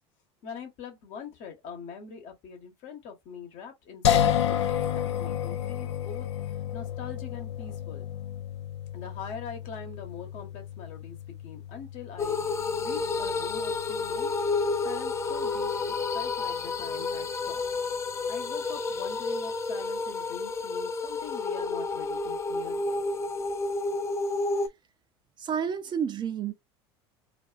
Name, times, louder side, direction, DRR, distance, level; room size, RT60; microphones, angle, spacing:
voice 1, 0.4-6.3 6.7-8.0 8.9-11.2 11.4-12.4 12.8-14.3 14.8-17.6 18.3-23.0, left 6 dB, 60° left, 1.1 m, -43 dB
sound 1, 4.0-17.1, left 10 dB, 85° left, 0.4 m, -32 dB
sound 2, 12.2-24.7, left 3 dB, 20° left, 0.4 m, -30 dB
voice 2, 25.4-26.5, right 7 dB, 30° right, 0.5 m, -30 dB
2.4 x 2.4 x 2.3 m
hypercardioid pair, 80°, 14 cm